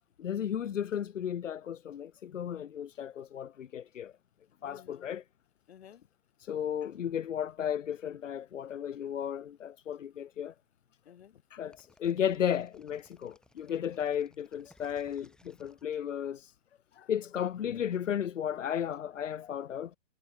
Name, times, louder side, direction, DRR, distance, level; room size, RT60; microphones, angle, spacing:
voice 1, 0.2-4.1 4.6-5.2 6.4-10.5 11.5-16.5 17.1-19.9, left 9 dB, 85° left, 0.8 m, -34 dB
voice 2, 4.6-5.1 5.7-6.1 9.9-10.0 10.5-10.6 11.0-11.4 12.0-12.1 13.6-13.7 14.6-14.8 15.6-15.8 16.2-16.3 16.7-17.1 19.1-19.5, left 9 dB, 60° left, 2.8 m, -57 dB
sound 1, 11.7-16.5, left 1 dB, ahead, 3.2 m, -63 dB
hypercardioid pair, 155°, 37 cm